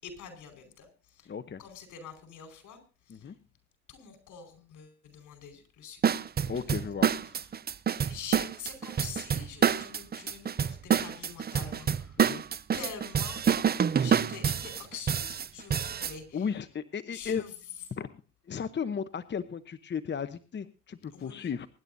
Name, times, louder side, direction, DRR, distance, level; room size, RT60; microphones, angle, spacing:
voice 1, 0.0-1.3 1.6-2.8 3.0-3.4 3.9-6.2 6.6-7.5 8.1-12.2 12.7-13.4 14.0-16.6 17.1-17.8 21.1-21.5, left 7 dB, 80° left, 8 dB, 5.0 m, -46 dB
voice 2, 1.3-1.6 3.1-3.3 6.5-7.1 12.2-12.4 16.3-17.4 18.0-18.1 18.5-21.7, left 7 dB, 35° left, 12 dB, 0.9 m, -35 dB
sound 1, 6.0-16.1, right 7 dB, 30° right, 0.6 m, -27 dB
24.0 x 11.0 x 2.7 m, 0.35 s
cardioid pair, 90°, 30 cm